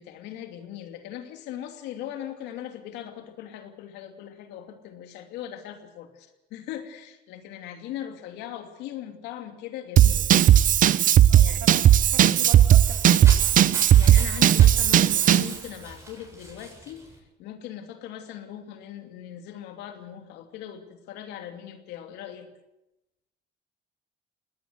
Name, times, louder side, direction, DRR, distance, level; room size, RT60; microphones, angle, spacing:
voice 1, 0.0-10.3 11.3-11.6 14.0-17.0 17.4-22.5, left 11 dB, 90° left, 7 dB, 2.8 m, -39 dB
Drum kit / Drum, 10.0-15.5, right 11 dB, 50° right, 0.8 m, -17 dB
voice 2, 11.3-11.9 12.1-13.4, right 9 dB, 85° right, 6 dB, 3.0 m, -40 dB
sound 1, 12.0-17.2, right 2 dB, 15° right, 7.9 m, -43 dB
21.0 x 18.5 x 8.1 m, 0.92 s
cardioid pair, 110°, 17 cm